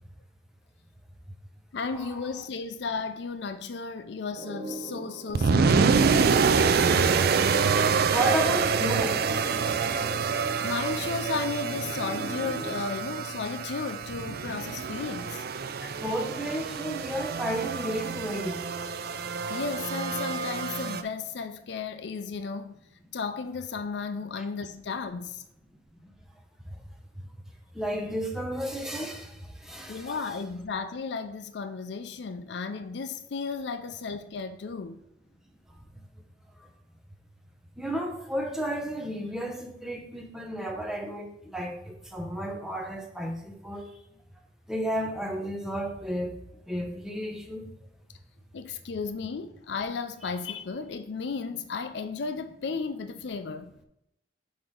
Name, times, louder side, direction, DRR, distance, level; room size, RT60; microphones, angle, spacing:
voice 1, 1.7-6.3 10.6-15.4 19.5-22.8 23.1-25.4 29.9-35.0 48.5-53.8, left 5 dB, 70° left, 0.5 m, -34 dB
sound 1, 4.3-12.8, right 2 dB, 30° right, 0.8 m, -40 dB
sound 2, 5.3-21.0, right 5 dB, 60° right, 0.4 m, -26 dB
voice 2, 8.1-9.2 15.8-18.7 24.4-24.5 26.0-26.1 26.6-26.8 27.2-27.4 27.7-30.2 35.9-36.0 36.6-36.7 37.8-43.9 44.7-46.4 46.7-47.7, right 1 dB, 5° right, 0.8 m, -33 dB
6.2 x 5.1 x 3.7 m
head